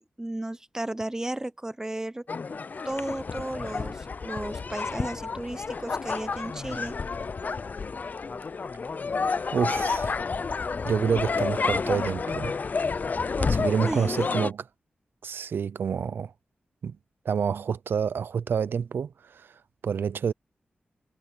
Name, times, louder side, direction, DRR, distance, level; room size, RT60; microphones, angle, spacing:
voice 1, 0.2-2.3 2.8-7.0 13.3-14.5, right 1 dB, 15° right, 0.9 m, -34 dB
sound 1, 2.3-14.5, left 4 dB, 50° left, 0.5 m, -30 dB
voice 2, 9.5-10.1 10.8-12.5 13.5-14.6 15.2-16.3 16.8-17.0 17.2-20.3, right 7 dB, 80° right, 0.5 m, -28 dB
cardioid pair, 60°, 4 cm